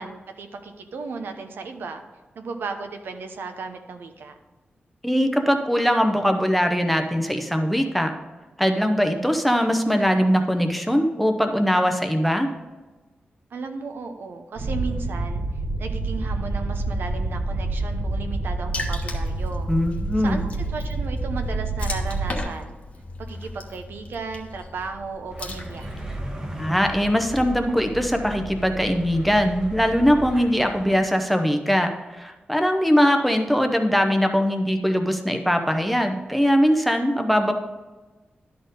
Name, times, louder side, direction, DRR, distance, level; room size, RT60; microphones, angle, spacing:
voice 1, 0.0-2.0 2.4-4.3 13.5-15.4 15.8-19.7 20.2-22.8 23.2-25.9, right 4 dB, 80° right, 6 dB, 0.9 m, -35 dB
voice 2, 5.0-8.1 8.6-12.5 19.7-20.4 26.6-37.5, equal, ahead, 5 dB, 0.6 m, -21 dB
sound 1, 14.6-22.4, right 2 dB, 50° right, 1.4 m, -27 dB
Water / Splash splatter, 18.7-26.2, left 2 dB, 40° left, 1.0 m, -38 dB
sound 2, 25.3-31.0, right 1 dB, 20° right, 1.0 m, -36 dB
11.5 x 4.3 x 5.2 m, 1.2 s
wide cardioid pair, 175°, 4 cm